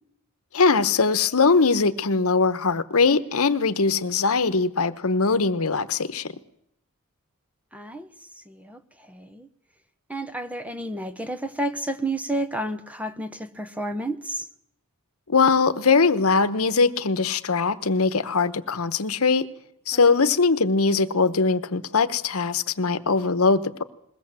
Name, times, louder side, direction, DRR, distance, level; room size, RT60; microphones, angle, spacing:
voice 1, 0.5-6.3 15.3-19.5 19.9-23.8, left 4 dB, 70° left, 1.0 m, -21 dB
voice 2, 7.7-9.5 10.1-14.5, right 1 dB, 5° right, 0.9 m, -31 dB
21.5 x 17.5 x 7.5 m
head